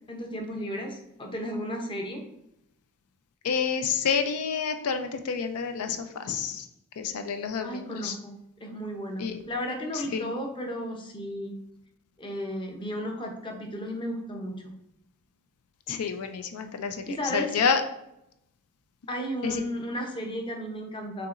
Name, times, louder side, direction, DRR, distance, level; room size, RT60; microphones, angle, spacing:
voice 1, 0.1-2.2 7.6-8.3 8.6-11.6 12.2-14.7 17.1-17.5 19.1-21.3, equal, 25° left, 2 dB, 0.7 m, -34 dB
voice 2, 3.4-6.7 7.0-8.2 9.2-9.4 9.9-10.3 15.9-17.8 19.4-19.7, left 6 dB, 90° left, 7 dB, 0.4 m, -29 dB
6.6 x 2.9 x 2.5 m, 0.82 s
head